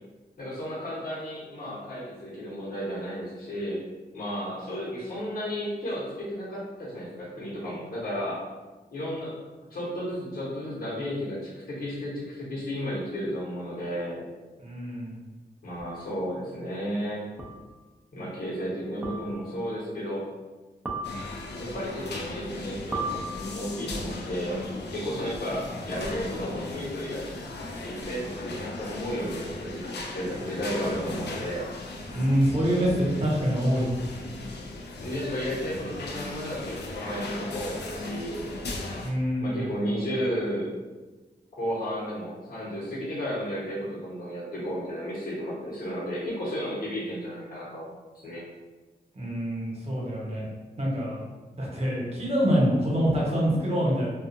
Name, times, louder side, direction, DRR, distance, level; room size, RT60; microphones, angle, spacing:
voice 1, 0.4-3.8 4.1-8.4 8.9-9.3 9.7-14.2 15.6-17.2 18.1-20.2 21.6-24.6 24.9-27.3 27.8-31.6 35.0-38.4 39.4-40.7 41.5-47.9 48.2-48.4, equal, 60° left, -8 dB, 1.1 m, -33 dB
voice 2, 14.6-15.2 32.1-33.9 39.0-39.7 49.1-50.5 50.8-51.2 51.5-54.1, equal, 35° right, -5 dB, 1.0 m, -25 dB
sound 1, 15.8-15.9 17.4-17.8 19.0-19.6 20.9-21.6 22.9-23.9, right 2 dB, 10° right, 0.5 m, -36 dB
sound 2, 21.0-39.1, left 2 dB, 80° left, 0.4 m, -37 dB
2.4 x 2.3 x 2.6 m, 1.3 s
cardioid pair, 65°, 17 cm